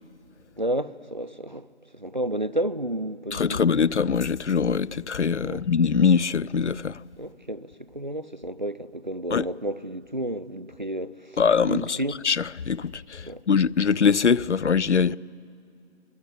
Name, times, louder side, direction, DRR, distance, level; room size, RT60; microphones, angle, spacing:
voice 1, 0.6-1.7 1.9-3.6 5.4-5.7 7.2-12.2 13.3-13.4 15.1-15.2, right 1 dB, 40° right, 0.6 m, -31 dB
voice 2, 3.3-7.0 9.3-9.4 11.4-12.0 12.2-15.2, left 6 dB, 75° left, 0.5 m, -22 dB
25.5 x 18.5 x 9.9 m
figure-of-eight pair, 170°, 35 cm